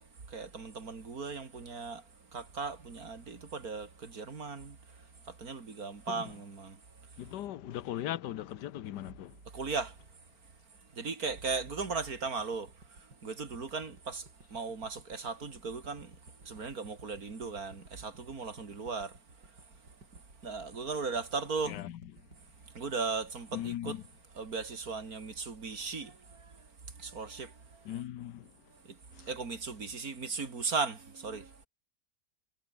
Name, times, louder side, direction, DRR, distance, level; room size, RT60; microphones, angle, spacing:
voice 1, 0.0-2.0 2.3-6.8 9.5-10.0 10.9-16.1 16.4-19.2 20.1-21.8 22.7-24.0 24.4-26.7 27.0-27.9 28.8-31.7, right 4 dB, 55° right, 3.2 m, -37 dB
voice 2, 7.2-9.4 21.6-22.0 23.5-24.1 27.8-28.5 29.2-29.3, left 12 dB, 80° left, 1.5 m, -38 dB
sound 1, 11.4-23.7 24.1-24.2, right 3 dB, 90° right, 6.0 m, -57 dB
omnidirectional pair, 1.8 m